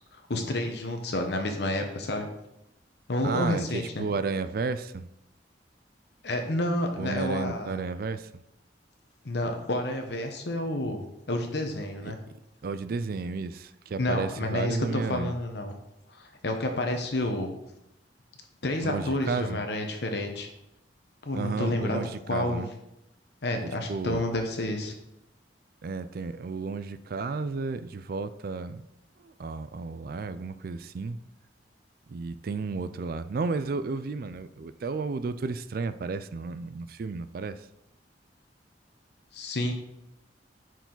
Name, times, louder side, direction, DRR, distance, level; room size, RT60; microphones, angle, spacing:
voice 1, 0.1-2.3 3.1-4.0 6.2-7.8 9.2-12.2 14.0-15.7 16.1-17.6 18.6-20.5 21.2-22.0 22.3-22.6 23.4-24.9 39.3-39.7, left 1 dB, 65° left, 4 dB, 0.9 m, -30 dB
voice 2, 3.2-5.1 7.0-8.3 12.0-12.1 12.6-15.4 18.8-19.6 21.3-22.7 23.6-24.2 25.8-28.8 29.2-31.2 32.1-37.7, right 4 dB, 55° right, 13 dB, 0.4 m, -33 dB
10.0 x 4.7 x 3.9 m, 0.85 s
head